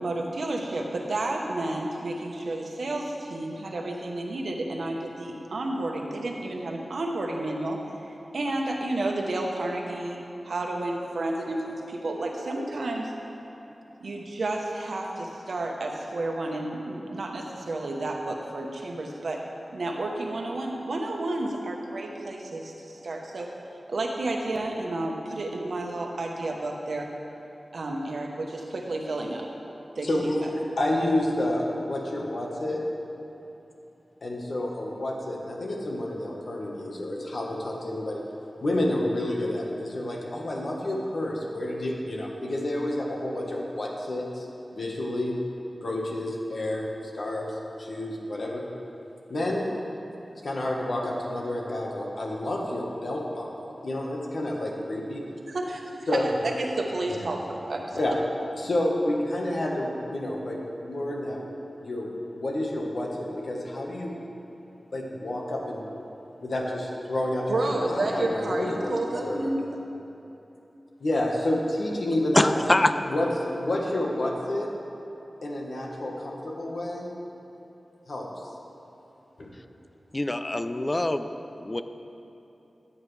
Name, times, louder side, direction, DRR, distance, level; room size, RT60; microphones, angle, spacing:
voice 1, 0.0-7.8 8.3-10.2 10.4-13.1 14.0-19.4 19.7-23.5 23.9-27.1 27.7-29.5 29.9-30.3 55.5-58.0 67.5-69.6, right 2 dB, 80° right, 1 dB, 1.0 m, -31 dB
voice 2, 30.0-32.8 34.2-38.2 38.6-44.5 44.7-45.3 45.8-48.6 49.3-49.7 50.4-55.2 56.1-56.3 57.2-57.3 57.9-58.2 58.6-61.4 61.8-64.2 64.9-65.8 66.4-69.4 71.0-72.5 73.1-74.7 75.4-77.1 78.1-78.4 79.4-79.5, left 1 dB, 70° left, -1 dB, 1.4 m, -29 dB
voice 3, 72.3-72.9 80.1-81.3 81.6-81.8, left 1 dB, 25° left, 9 dB, 0.4 m, -24 dB
13.5 x 8.7 x 3.3 m, 3.0 s
wide cardioid pair, 85°, 0 cm